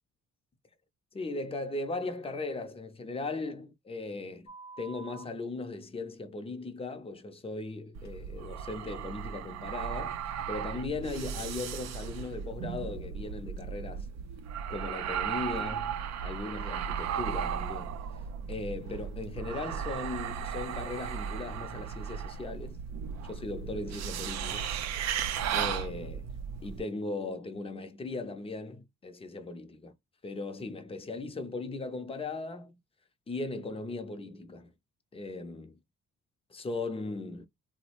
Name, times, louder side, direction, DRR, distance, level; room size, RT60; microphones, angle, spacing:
voice 1, 1.1-4.5 4.8-14.1 14.7-18.0 18.5-22.8 23.2-24.7 25.5-26.3 26.6-29.9 30.2-32.8 33.3-34.7 35.1-35.8 36.5-37.5, left 3 dB, 20° left, 0.6 m, -38 dB
sound 1, 4.5-5.2 8.0-8.1, right 3 dB, 65° left, 0.6 m, -47 dB
sound 2, 7.9-26.8, right 8 dB, 60° right, 0.4 m, -36 dB
3.3 x 2.1 x 3.0 m
cardioid pair, 95°, 30 cm